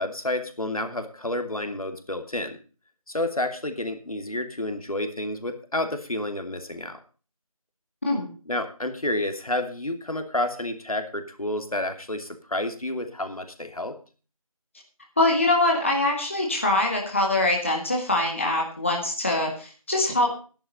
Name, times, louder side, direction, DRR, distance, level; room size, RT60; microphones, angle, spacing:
voice 1, 0.0-2.6 3.1-7.0 8.5-14.0, left 1 dB, 70° left, 7 dB, 2.8 m, -30 dB
voice 2, 15.2-20.3, left 2 dB, 20° left, 0 dB, 1.8 m, -23 dB
11.5 x 11.0 x 5.4 m, 0.37 s
figure-of-eight pair, 175°, 19 cm